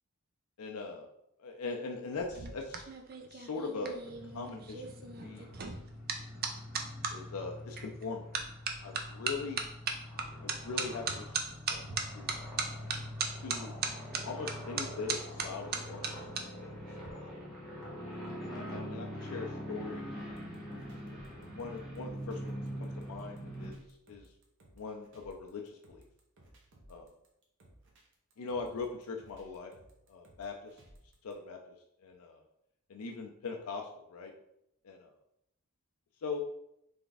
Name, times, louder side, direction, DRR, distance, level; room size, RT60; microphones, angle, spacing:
voice 1, 0.6-1.1 1.4-2.9 3.2-4.8 5.1-5.8 7.1-8.2 8.8-9.6 10.4-11.3 11.7-12.5 13.4-13.7 14.2-16.3 16.6-17.3 18.3-20.2 21.1-24.3 24.8-26.0 26.9-27.1 28.4-29.7 30.1-30.8 31.2-32.4 32.9-34.3 34.8-35.1 36.2-36.4, left 4 dB, 80° left, 2 dB, 0.4 m, -41 dB
sound 1, 2.1-7.1 7.8-8.0 8.3-16.4 16.7-17.1, right 5 dB, 45° right, 0.5 m, -37 dB
sound 2, 4.1-23.7, equal, ahead, 1.1 m, -44 dB
sound 3, 20.2-31.3, right 1 dB, 60° right, 1.0 m, -60 dB
3.5 x 3.4 x 3.9 m, 0.80 s
head